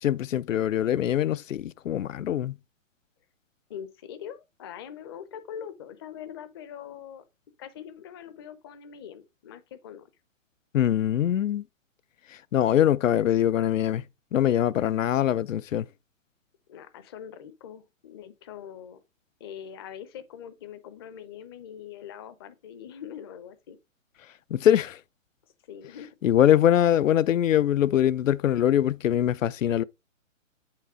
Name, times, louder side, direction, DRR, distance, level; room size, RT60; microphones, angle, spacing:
voice 1, 0.0-2.5 10.7-11.6 12.5-14.0 14.3-15.9 24.5-25.0 26.2-29.8, left 11 dB, 75° left, 0.6 m, -23 dB
voice 2, 3.7-7.2 7.6-10.1 16.7-19.0 19.4-23.8 25.7-26.1, left 9 dB, 20° left, 0.5 m, -42 dB
8.5 x 3.3 x 4.9 m
hypercardioid pair, 145°, 39 cm